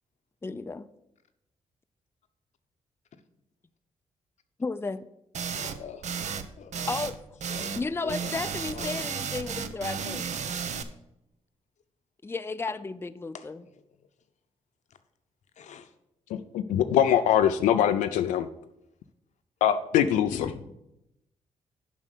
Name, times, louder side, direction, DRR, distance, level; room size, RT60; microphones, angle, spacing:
voice 1, 0.4-0.9 4.6-5.0 6.9-7.2 7.8-10.3 12.2-13.6, left 3 dB, 20° left, 0.5 m, -33 dB
sound 1, 5.3-5.8 6.0-6.5 6.7-7.1 7.4-10.8, right 6 dB, 65° right, 0.7 m, -33 dB
voice 2, 5.5-6.1 6.6-6.8 7.5-7.8 8.0-8.3 8.7-9.1 13.3-13.5 15.6-15.9 20.3-20.7, left 7 dB, 65° left, 0.8 m, -41 dB
voice 3, 16.3-18.5 19.6-20.5, left 10 dB, 85° left, 0.4 m, -23 dB
7.5 x 5.1 x 6.6 m
supercardioid pair, 55°, 13 cm